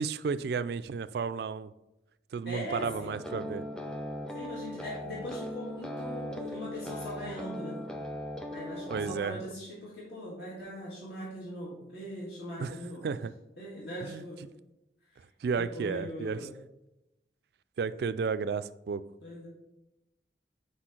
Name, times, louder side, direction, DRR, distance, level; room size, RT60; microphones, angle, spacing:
voice 1, 0.0-1.7 2.3-3.6 8.9-9.5 12.6-12.8 13.0-13.3 14.0-14.2 15.4-16.5 17.8-19.0, right 5 dB, 65° right, 14 dB, 0.3 m, -32 dB
voice 2, 2.5-3.2 4.3-7.8 8.5-13.0 13.6-14.4 15.6-16.5 19.2-19.5, equal, 75° left, -7 dB, 1.9 m, -40 dB
sound 1, 2.8-9.2, left 1 dB, 5° left, 0.4 m, -39 dB
5.1 x 4.3 x 5.9 m, 0.91 s
head